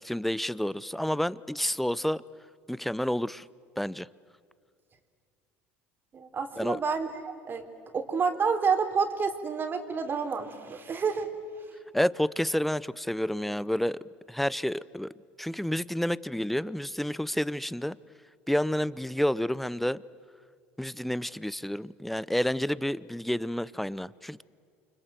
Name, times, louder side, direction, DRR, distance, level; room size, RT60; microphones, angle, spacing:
voice 1, 0.0-2.2 2.7-3.4 3.8-4.1 6.6-6.8 11.9-14.0 14.3-15.1 15.4-18.0 18.5-20.0 20.8-24.4, equal, 5° left, 20 dB, 0.7 m, -29 dB
voice 2, 6.1-7.7 7.9-11.3, right 5 dB, 35° right, 6 dB, 3.7 m, -29 dB
29.5 x 25.5 x 7.7 m, 2.2 s
hypercardioid pair, 75°, 6 cm